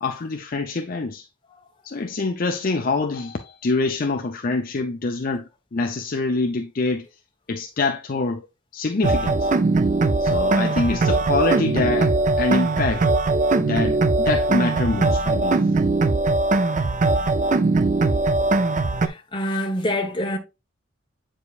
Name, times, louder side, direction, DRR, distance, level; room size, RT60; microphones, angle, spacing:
voice 1, 0.0-1.2 1.8-7.1 7.5-8.4 8.7-9.5 10.2-13.1 13.6-15.7, left 3 dB, 45° left, 0.5 m, -25 dB
sound 1, 9.0-19.1, right 3 dB, 40° right, 0.5 m, -20 dB
voice 2, 19.0-20.4, left 1 dB, 25° left, 1.2 m, -26 dB
8.2 x 4.9 x 2.4 m
head